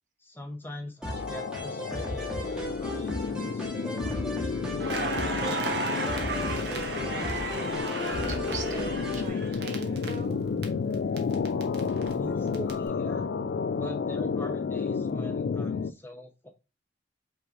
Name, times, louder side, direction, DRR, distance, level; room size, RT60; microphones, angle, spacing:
voice 1, 0.2-6.1 12.1-13.3 13.7-16.5, left 1 dB, 10° left, 4 dB, 0.8 m, -43 dB
sound 1, 1.0-9.3, equal, 5° right, 1.3 m, -36 dB
sound 2, 1.1-15.9, left 5 dB, 65° left, 0.3 m, -31 dB
Crackle, 4.8-10.6 10.9-12.7, right 3 dB, 70° right, 1.0 m, -35 dB
voice 2, 8.3-10.4, right 3 dB, 40° right, 4 dB, 1.0 m, -40 dB
5.5 x 3.2 x 2.6 m, 0.27 s
head